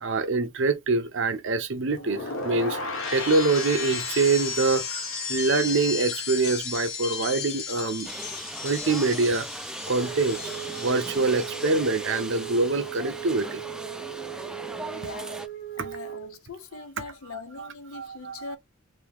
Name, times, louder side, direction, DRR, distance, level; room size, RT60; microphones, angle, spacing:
voice 1, 0.0-2.8 3.1-8.1 8.6-9.5 9.9-13.6 15.8-15.9 17.6-17.7 17.9-18.4, right 3 dB, 65° right, 0.8 m, -25 dB
sound 1, 1.9-12.0 12.3-12.7, left 4 dB, 70° left, 1.0 m, -34 dB
sound 2, 8.0-15.5, right 1 dB, 5° right, 0.3 m, -38 dB
Wind instrument woodwind instrument, 9.9-16.4, right 11 dB, 45° left, 1.1 m, -38 dB
voice 2, 14.9-15.4 15.8-18.6, left 4 dB, 90° left, 0.7 m, -41 dB
3.6 x 2.7 x 3.4 m
head